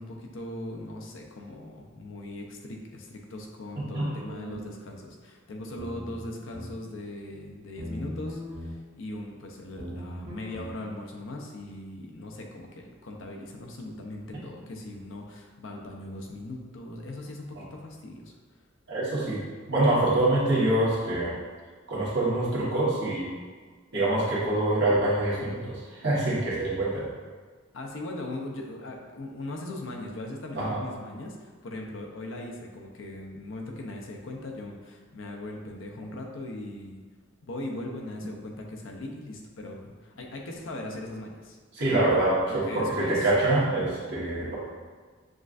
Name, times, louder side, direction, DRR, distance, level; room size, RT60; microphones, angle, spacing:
voice 1, 0.0-18.4 27.7-37.0 37.4-41.6 42.5-43.3, left 1 dB, 70° left, 1 dB, 0.6 m, -39 dB
voice 2, 3.7-4.1 17.5-17.6 18.9-21.4 21.9-23.3 23.9-27.1 30.5-30.8 41.7-44.5, right 2 dB, 60° right, -8 dB, 1.3 m, -25 dB
sound 1, 3.8-4.8 5.8-6.8 7.8-8.8 9.8-10.7, equal, 90° right, 1.1 m, -40 dB
6.2 x 2.4 x 2.5 m, 1.5 s
head